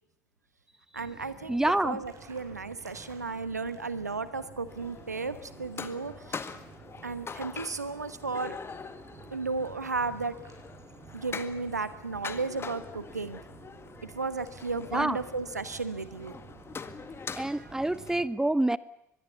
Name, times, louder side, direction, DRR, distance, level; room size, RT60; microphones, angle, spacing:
sound 1, 0.9-18.3, right 5 dB, 40° right, 7.3 m, -51 dB
voice 1, 0.9-6.6 7.0-8.6 9.3-10.3 11.1-13.4 14.0-16.4 17.5-17.7, right 4 dB, 85° right, 14 dB, 1.2 m, -34 dB
voice 2, 1.5-2.0 14.9-15.2 17.4-18.8, right 1 dB, 5° right, 18 dB, 0.9 m, -27 dB
sound 2, 4.7-18.2, left 5 dB, 30° left, 1.8 m, -44 dB
24.0 x 21.5 x 8.3 m, 0.80 s
figure-of-eight pair, 60°, 9 cm